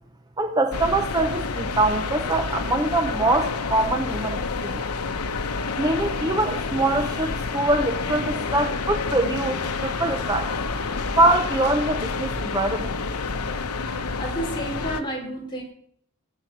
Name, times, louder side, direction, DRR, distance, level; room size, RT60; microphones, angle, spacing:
voice 1, 0.4-4.8 5.8-10.5 11.2-12.9, right 2 dB, 15° right, 6 dB, 0.6 m, -23 dB
sound 1, 0.7-15.0, left 4 dB, 90° left, 0.9 m, -29 dB
voice 2, 14.2-15.6, right 1 dB, 20° left, 0 dB, 3.2 m, -30 dB
17.0 x 8.2 x 6.3 m, 0.66 s
head